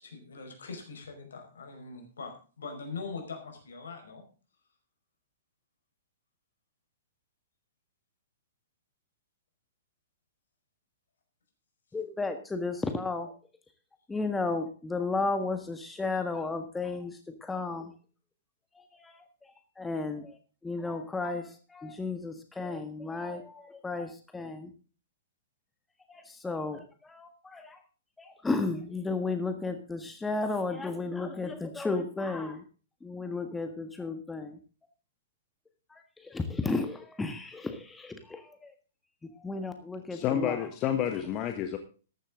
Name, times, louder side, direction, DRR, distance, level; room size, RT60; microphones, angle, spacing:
voice 1, 0.0-4.2, left 4 dB, 70° left, 5 dB, 5.1 m, -42 dB
voice 2, 11.9-13.4 14.1-17.1 17.4-17.9 18.7-24.7 26.1-27.8 28.2-32.6 33.0-34.6 35.9-38.7 39.2-40.7, left 3 dB, 10° left, 7 dB, 1.6 m, -34 dB
voice 3, 40.1-41.8, left 9 dB, 35° left, 7 dB, 1.5 m, -29 dB
14.0 x 11.5 x 3.8 m, 0.37 s
figure-of-eight pair, 115°, 0 cm